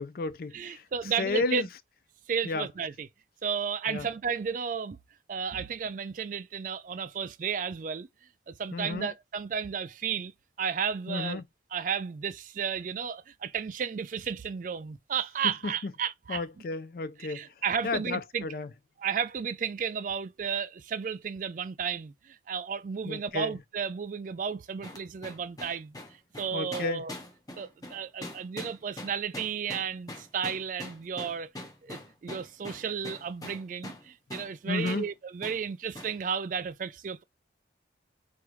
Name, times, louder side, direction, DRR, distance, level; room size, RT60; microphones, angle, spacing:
voice 1, 0.0-0.8 1.2-1.7 2.4-2.7 3.9-4.1 8.7-9.1 11.1-11.4 16.3-17.5 17.8-18.7 23.0-23.5 26.5-27.0 34.7-35.0, left 3 dB, 50° left, 0.4 m, -32 dB
voice 2, 0.5-1.6 2.3-3.1 3.4-5.0 5.3-8.1 8.5-10.3 10.6-11.4 11.7-16.4 17.2-18.5 19.0-25.9 26.4-27.1 27.6-31.5 31.8-37.2, right 7 dB, 45° right, 0.3 m, -33 dB
sound 1, 24.8-34.1 34.3-34.5 34.9-35.1 35.4-35.6 36.0-36.2, left 1 dB, 20° left, 0.9 m, -42 dB
4.6 x 2.5 x 3.1 m
head